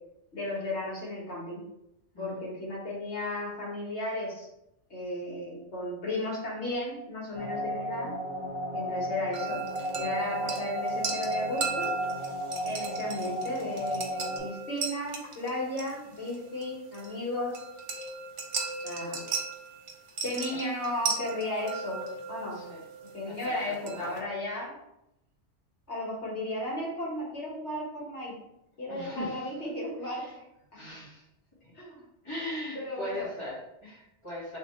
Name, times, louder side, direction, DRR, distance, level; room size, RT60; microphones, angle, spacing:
voice 1, 0.3-1.6 2.2-4.5 4.9-8.1 8.7-9.6 9.9-11.9 12.6-17.6 18.8-19.2 20.2-22.0 22.3-22.6 23.1-24.8 25.9-28.3 28.8-30.5 31.8-32.0 32.8-33.3, left 1 dB, 70° left, -5 dB, 1.8 m, -34 dB
sound 1, 7.3-14.4, equal, 15° right, 0.9 m, -34 dB
sound 2, 9.3-24.2, right 4 dB, 80° right, 1.1 m, -37 dB
voice 2, 28.9-29.5 30.1-30.3 30.7-31.2 32.2-34.6, left 1 dB, 25° left, -7 dB, 1.5 m, -39 dB
3.3 x 3.0 x 4.2 m, 0.84 s
omnidirectional pair, 1.2 m